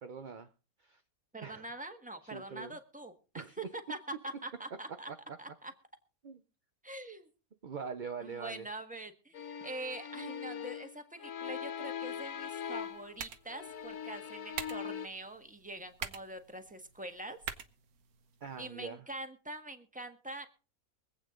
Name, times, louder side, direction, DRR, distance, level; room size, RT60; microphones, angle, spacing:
voice 1, 0.0-0.5 0.8-1.0 1.4-1.6 2.3-2.7 3.3-3.6 5.1-5.4 6.2-6.4 7.6-8.7 18.4-19.0, right 6 dB, 40° right, 0.7 m, -43 dB
voice 2, 1.3-5.1 5.4-5.7 6.8-7.3 8.2-9.3 9.6-17.4 18.6-20.5, right 1 dB, 5° right, 1.4 m, -44 dB
sound 1, 9.3-13.2 13.5-15.1, left 8 dB, 65° left, 1.3 m, -41 dB
sound 2, 12.7-18.7, right 7 dB, 85° right, 1.6 m, -47 dB
24.0 x 8.6 x 3.8 m
omnidirectional pair, 1.5 m